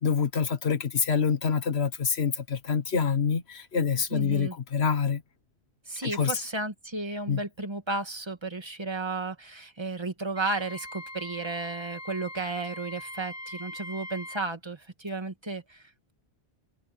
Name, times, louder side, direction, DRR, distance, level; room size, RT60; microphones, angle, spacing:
voice 1, 0.0-5.2 6.0-6.3 7.3-7.4, left 6 dB, 80° left, 1.6 m, -26 dB
voice 2, 4.1-4.6 5.9-15.8, right 3 dB, 25° right, 1.8 m, -33 dB
Wind instrument woodwind instrument, 10.4-14.5, left 1 dB, 15° left, 2.3 m, -41 dB
omnidirectional pair, 1.1 m